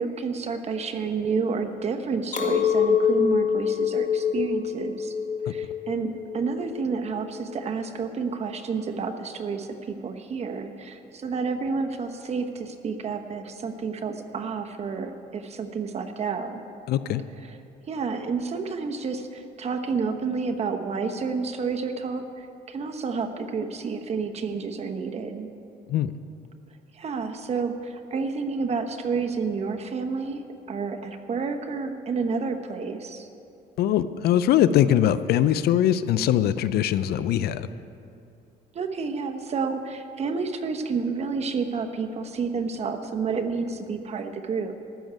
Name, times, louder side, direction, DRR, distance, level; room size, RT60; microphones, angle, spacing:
voice 1, 0.0-5.1 5.5-16.6 17.4-17.5 17.9-25.5 26.9-33.3 38.7-44.8, right 5 dB, 40° right, 6 dB, 1.1 m, -30 dB
Chink clink, 2.3-7.7, left 7 dB, 50° left, 1.7 m, -26 dB
voice 2, 16.9-17.2 25.9-26.1 33.8-37.7, left 11 dB, 70° left, 14 dB, 0.5 m, -22 dB
14.0 x 6.4 x 9.3 m, 2.6 s
cardioid pair, 110°, 17 cm